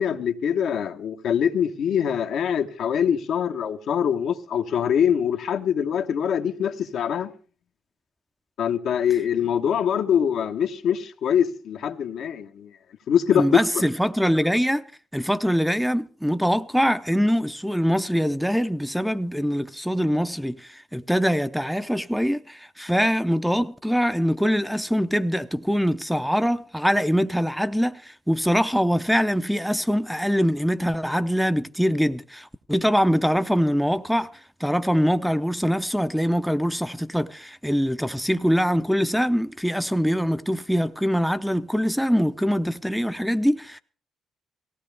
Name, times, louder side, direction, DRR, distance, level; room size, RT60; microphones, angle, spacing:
voice 1, 0.0-7.3 8.6-12.7 13.1-13.8, left 8 dB, 75° left, 1.1 m, -23 dB
voice 2, 13.3-14.8 15.1-34.3 34.6-43.8, equal, ahead, 0.6 m, -23 dB
17.5 x 16.0 x 3.4 m
cardioid pair, 90°, 0 cm